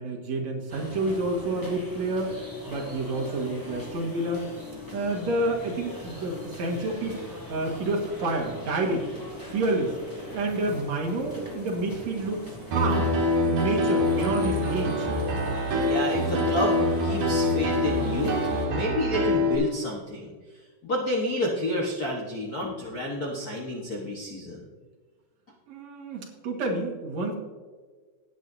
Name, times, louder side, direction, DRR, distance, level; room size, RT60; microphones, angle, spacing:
voice 1, 0.0-2.4 2.7-4.5 4.9-7.2 7.5-9.1 9.5-10.0 10.3-13.1 13.4-15.1 25.7-27.3, right 2 dB, 60° right, 0 dB, 2.8 m, -29 dB
sound 1, 0.7-18.7, left 1 dB, 5° left, 2.6 m, -40 dB
Piano, 12.7-19.6, left 1 dB, 80° right, 3.2 m, -25 dB
voice 2, 15.8-18.4 18.6-20.3 20.8-24.6, left 1 dB, 50° left, -1 dB, 1.1 m, -29 dB
18.0 x 8.5 x 2.7 m, 1.5 s
omnidirectional pair, 3.6 m